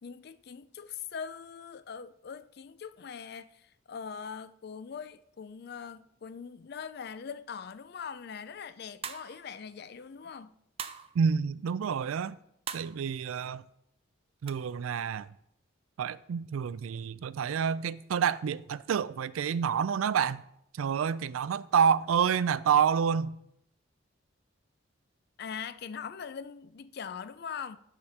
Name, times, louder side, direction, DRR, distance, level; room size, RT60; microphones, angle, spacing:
voice 1, 0.0-10.5 25.4-27.8, left 6 dB, 50° left, 0.4 m, -42 dB
sound 1, 9.0-9.5 10.8-11.1 12.7-13.0 14.5-14.6, right 7 dB, 30° right, 0.4 m, -39 dB
voice 2, 11.1-12.4 12.7-13.6 14.4-15.3 16.0-20.4 20.7-23.3, right 7 dB, 90° right, 0.4 m, -28 dB
9.7 x 5.0 x 5.8 m
head